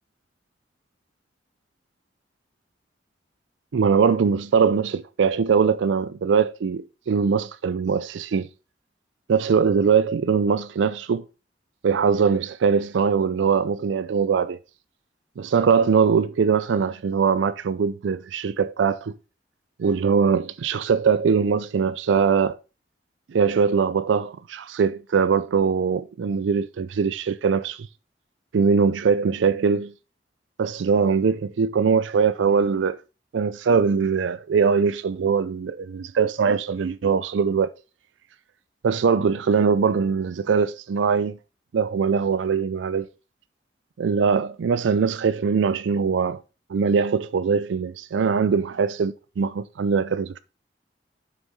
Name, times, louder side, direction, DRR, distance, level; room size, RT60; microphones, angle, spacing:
voice 1, 3.7-8.5 9.3-11.2 11.8-14.6 15.4-19.1 19.8-22.6 23.3-27.9 28.5-29.9 30.6-33.0 33.3-37.7 38.8-41.4 41.7-43.1 44.0-46.4 46.7-50.4, right 6 dB, 90° right, 0.4 m, -22 dB
7.3 x 6.2 x 4.0 m
head